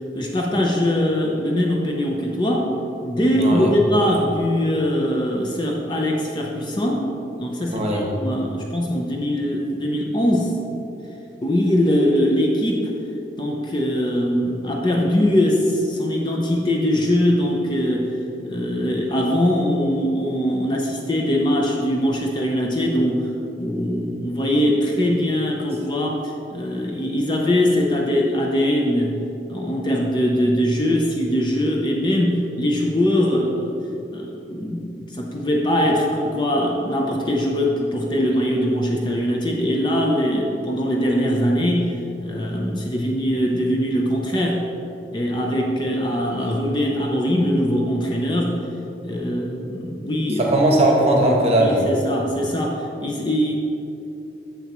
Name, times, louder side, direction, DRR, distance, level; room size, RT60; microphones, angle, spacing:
voice 1, 0.1-2.7 3.0-7.1 7.4-10.6 11.4-12.9 13.4-33.8 34.1-42.0 42.2-44.7 45.1-48.6 49.0-50.5 51.6-53.5, equal, 25° left, 0 dB, 0.5 m, -22 dB
voice 2, 3.4-3.7 7.7-8.1 50.4-51.8, right 1 dB, 35° right, -1 dB, 1.0 m, -18 dB
7.2 x 6.9 x 3.0 m, 2.9 s
head